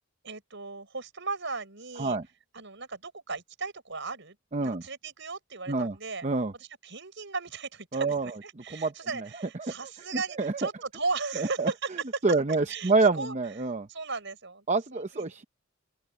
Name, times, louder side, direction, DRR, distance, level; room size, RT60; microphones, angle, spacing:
voice 1, 0.2-2.2 2.5-6.3 6.6-11.9 12.7-13.4 13.9-14.7 14.9-15.4, right 4 dB, 60° right, 6.9 m, -36 dB
voice 2, 4.5-4.8 5.7-6.0 6.2-6.5 7.9-8.3 8.7-8.9 9.4-9.7 10.1-10.7 11.4-11.7 12.2-13.9 14.7-15.4, right 3 dB, 35° right, 0.7 m, -27 dB
open air
head